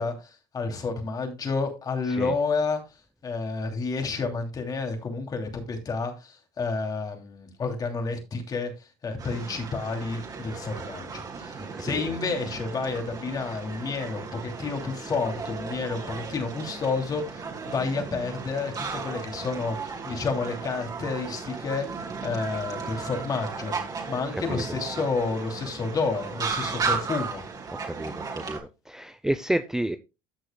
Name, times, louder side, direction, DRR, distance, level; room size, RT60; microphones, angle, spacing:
voice 1, 0.0-2.8 3.2-23.7 24.1-27.4, left 4 dB, 35° left, 2.8 m, -30 dB
sound 1, 9.2-28.6, right 5 dB, 35° right, 3.1 m, -35 dB
voice 2, 27.8-28.6 28.9-30.0, right 1 dB, 5° right, 0.6 m, -30 dB
14.5 x 6.4 x 2.3 m
supercardioid pair, 105°, 12 cm